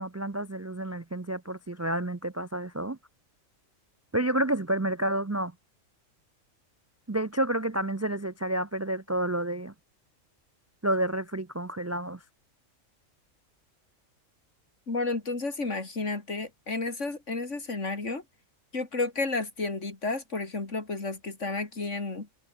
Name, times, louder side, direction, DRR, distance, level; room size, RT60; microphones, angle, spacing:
voice 1, 0.0-3.0 4.1-5.5 7.1-9.7 10.8-12.2, right 1 dB, 25° right, 0.3 m, -29 dB
voice 2, 14.9-18.2 18.7-22.3, left 3 dB, 65° left, 3.7 m, -32 dB
omnidirectional pair, 1.4 m